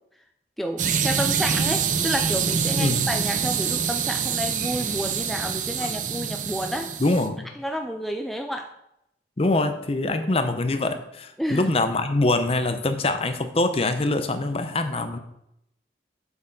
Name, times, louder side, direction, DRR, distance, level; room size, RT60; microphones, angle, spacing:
voice 1, 0.6-6.9 7.6-8.7 11.4-11.7, equal, ahead, 4 dB, 0.3 m, -30 dB
sound 1, 0.8-7.3, right 6 dB, 45° right, 0.6 m, -25 dB
voice 2, 2.8-3.1 5.8-5.9 7.0-7.5 9.4-15.2, left 2 dB, 35° left, 8 dB, 0.6 m, -24 dB
7.0 x 4.6 x 6.4 m, 0.81 s
head